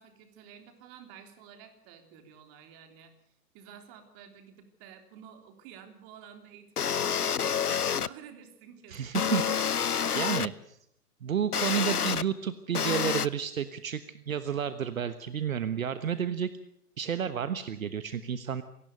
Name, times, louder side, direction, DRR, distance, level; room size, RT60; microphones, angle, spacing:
voice 1, 0.0-3.1 3.5-9.3, right 8 dB, 30° right, 7 dB, 3.4 m, -51 dB
sound 1, 6.8-8.1 9.1-10.5 11.5-12.2 12.7-13.3, left 7 dB, 80° left, 0.8 m, -28 dB
voice 2, 8.9-10.8 11.2-16.5 17.0-18.6, right 8 dB, 60° right, 12 dB, 1.3 m, -31 dB
26.5 x 18.5 x 6.7 m, 0.70 s
figure-of-eight pair, 115°, 45 cm